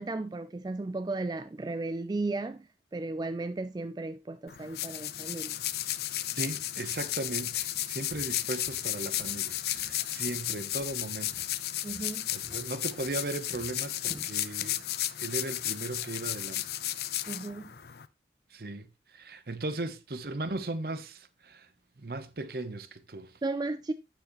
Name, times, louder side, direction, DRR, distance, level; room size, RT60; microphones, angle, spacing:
voice 1, 0.0-5.5 11.8-12.2 17.3-17.7 23.4-23.9, right 2 dB, 25° right, 0.3 m, -35 dB
sound 1, 4.5-18.1, left 13 dB, 65° left, 0.5 m, -34 dB
voice 2, 6.4-11.5 12.3-14.8 15.2-16.6 18.5-18.9 19.1-21.7 22.0-23.3, right 2 dB, 55° right, 0.8 m, -37 dB
Walk footsteps, 7.5-7.7 8.1-9.5 9.8-11.1 11.3-14.9 15.2-15.4 15.9-16.0, equal, ahead, 2.1 m, -52 dB
9.2 x 7.1 x 3.0 m
head